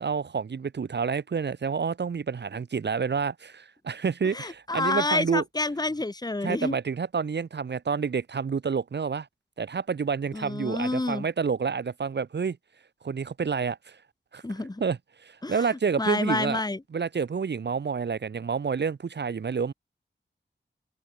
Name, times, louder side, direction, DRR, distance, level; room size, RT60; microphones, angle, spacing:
voice 1, 0.0-5.4 6.4-9.3 9.6-12.6 13.0-14.0 14.3-14.4 14.8-16.6 16.9-19.7, right 6 dB, 65° right, 1.0 m, -29 dB
voice 2, 4.3-6.8 10.3-11.3 14.4-14.8 15.4-15.7 16.0-16.8, left 2 dB, 20° left, 1.9 m, -28 dB
wide cardioid pair, 105°, 19 cm